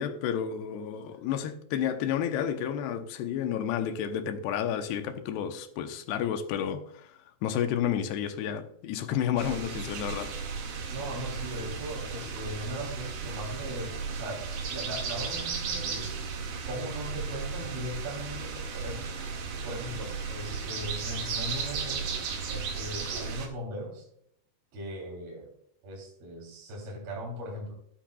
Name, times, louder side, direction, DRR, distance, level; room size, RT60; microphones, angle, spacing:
voice 1, 0.0-6.8 7.4-10.3, left 9 dB, 85° left, 3.0 m, -31 dB
sound 1, 9.4-23.5, right 5 dB, 80° right, 3.9 m, -35 dB
voice 2, 10.9-16.1 16.7-19.4 19.6-22.1 22.5-24.0 24.7-25.5 25.8-27.7, equal, 65° right, 5.1 m, -39 dB
13.5 x 12.0 x 2.3 m
omnidirectional pair, 4.6 m